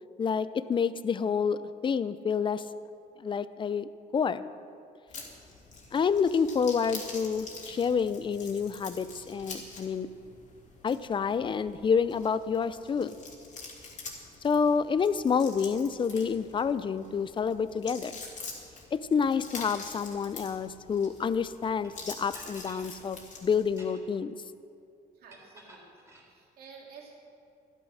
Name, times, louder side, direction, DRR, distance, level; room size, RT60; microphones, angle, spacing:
voice 1, 0.2-2.6 3.2-4.4 5.9-10.1 10.8-13.2 14.4-18.2 18.9-24.4, left 6 dB, 30° left, 15 dB, 0.5 m, -28 dB
sound 1, 5.1-23.8, left 4 dB, 45° left, 2.9 m, -46 dB
sound 2, 21.8-21.9 22.3-22.9 23.6-24.2 25.3-26.3, equal, 15° right, 3.6 m, -51 dB
voice 2, 25.1-27.2, right 5 dB, 65° right, -2 dB, 2.9 m, -52 dB
13.0 x 11.5 x 6.3 m, 2.6 s
cardioid pair, 110°, 17 cm